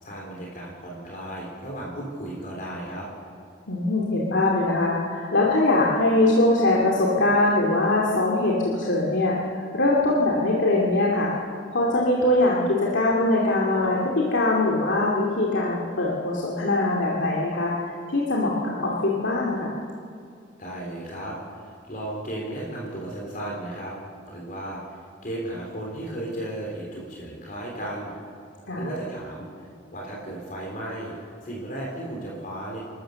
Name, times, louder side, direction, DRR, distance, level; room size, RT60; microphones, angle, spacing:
voice 1, 0.0-3.1 20.6-23.9 24.3-24.8 25.2-28.1 28.7-29.5 29.9-31.1 31.4-32.8, right 1 dB, 45° left, -2 dB, 3.6 m, -34 dB
voice 2, 3.7-9.4 9.7-11.4 11.7-19.8 28.7-28.9, left 2 dB, 80° left, -4 dB, 2.5 m, -22 dB
28.0 x 13.5 x 7.1 m, 2.3 s
head